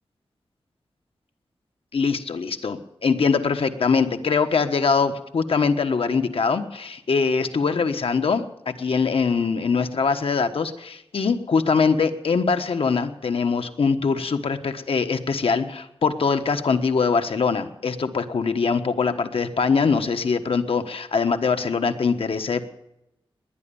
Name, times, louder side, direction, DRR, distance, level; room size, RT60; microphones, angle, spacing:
voice 1, 1.9-22.7, left 5 dB, 70° left, 8 dB, 1.4 m, -23 dB
20.5 x 9.9 x 7.1 m, 0.85 s
wide cardioid pair, 130°, 10 cm